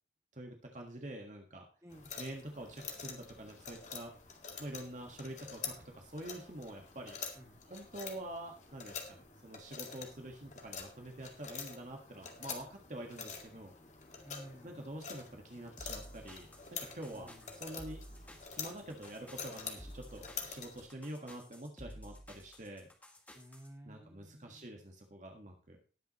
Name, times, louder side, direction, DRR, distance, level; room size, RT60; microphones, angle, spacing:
voice 1, 0.3-1.6 2.2-4.1 4.6-7.2 7.7-13.7 14.6-18.0 18.5-22.9 23.8-25.8, right 1 dB, 40° right, 2 dB, 1.7 m, -46 dB
voice 2, 1.8-2.1 7.4-7.6 14.2-14.8 17.1-17.5 23.3-24.8, equal, 15° right, 1 dB, 2.3 m, -54 dB
sound 1, 1.9-20.9, left 6 dB, 40° left, 2.1 m, -47 dB
sound 2, 15.8-23.7, equal, 10° left, 2.0 m, -53 dB
19.5 x 7.1 x 3.1 m, 0.37 s
head